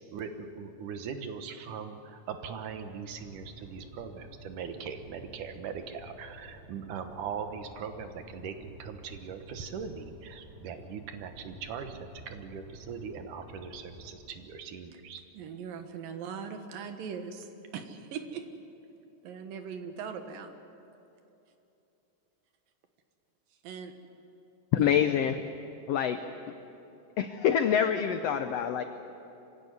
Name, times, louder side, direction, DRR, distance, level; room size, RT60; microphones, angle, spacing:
voice 1, 0.1-15.2, right 6 dB, 70° right, 7 dB, 2.7 m, -40 dB
sound 1, 3.0-14.2, equal, 40° right, 4.8 m, -52 dB
voice 2, 15.3-18.4 19.2-20.5 23.6-23.9 24.8-25.1, right 6 dB, 85° right, 6 dB, 3.2 m, -40 dB
voice 3, 24.7-25.4 25.9-26.2 26.5-26.6 27.2-28.8, left 9 dB, 85° left, 8 dB, 1.4 m, -26 dB
25.5 x 16.0 x 9.6 m, 2.9 s
omnidirectional pair, 3.9 m